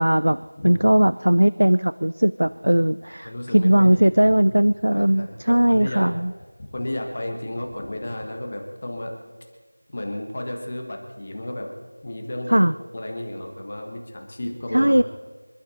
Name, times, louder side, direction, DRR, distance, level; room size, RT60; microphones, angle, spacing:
voice 1, 0.0-6.3 12.5-12.7 14.7-15.0, right 1 dB, 80° right, 17 dB, 0.4 m, -19 dB
voice 2, 3.2-4.5 4.9-6.1 6.7-9.1 9.9-11.7 12.0-12.7 12.9-15.0, left 1 dB, 20° left, 2 dB, 1.4 m, -33 dB
27.0 x 12.5 x 4.1 m, 1.3 s
figure-of-eight pair, 180°, 0 cm